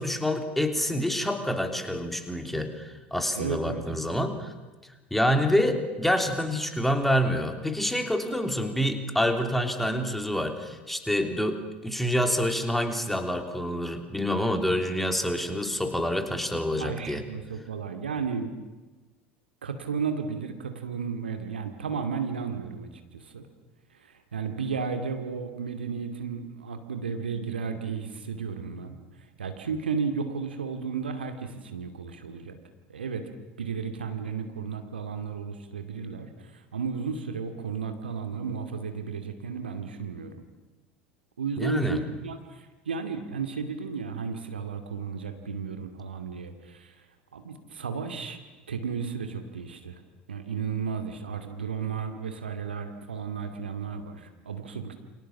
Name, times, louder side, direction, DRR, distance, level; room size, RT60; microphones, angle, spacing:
voice 1, 0.0-4.5 5.1-17.2 41.6-42.0, equal, 5° left, 6 dB, 3.4 m, -27 dB
voice 2, 3.3-3.8 16.8-18.5 19.6-23.5 23.9-29.0 29.4-32.6 32.9-33.3 33.6-40.3 41.4-47.0 47.3-48.4 48.7-50.0 50.3-54.9, right 5 dB, 75° right, 7 dB, 2.5 m, -33 dB
29.0 x 26.0 x 7.3 m, 1.2 s
figure-of-eight pair, 70°, 6 cm